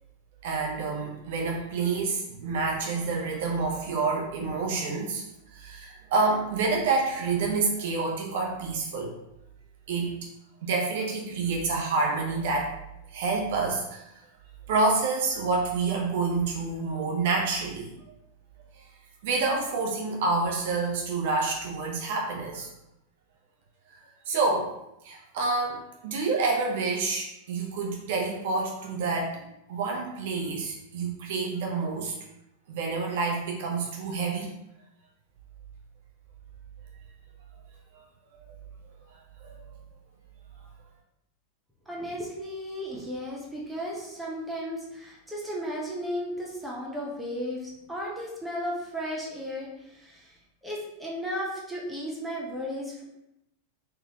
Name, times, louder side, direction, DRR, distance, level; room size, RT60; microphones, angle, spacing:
voice 1, 0.4-5.2 5.5-9.1 9.9-10.1 10.6-12.7 13.1-14.0 14.7-17.9 19.2-22.7 24.3-24.7 25.0-29.4 29.7-32.1 32.7-34.5 39.4-39.5, right 3 dB, 55° right, -1 dB, 0.9 m, -28 dB
voice 2, 41.9-50.3 50.6-53.0, equal, 5° right, -4 dB, 1.0 m, -35 dB
4.0 x 3.3 x 2.9 m, 0.84 s
figure-of-eight pair, 90°, 0 cm